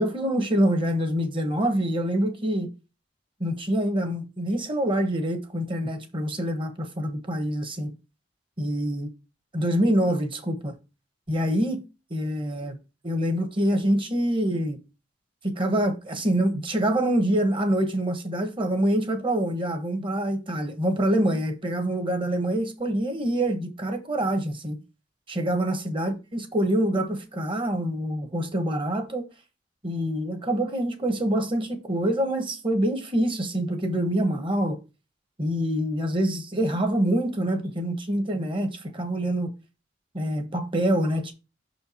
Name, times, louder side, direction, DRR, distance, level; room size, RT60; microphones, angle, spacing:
voice 1, 0.0-2.7 3.4-7.9 8.6-9.1 9.5-10.7 11.3-11.8 12.1-12.8 13.0-14.8 15.4-24.8 25.3-29.3 29.8-34.8 35.4-39.5 40.1-41.3, right 1 dB, 30° right, 1.2 m, -25 dB
6.1 x 4.5 x 4.3 m
head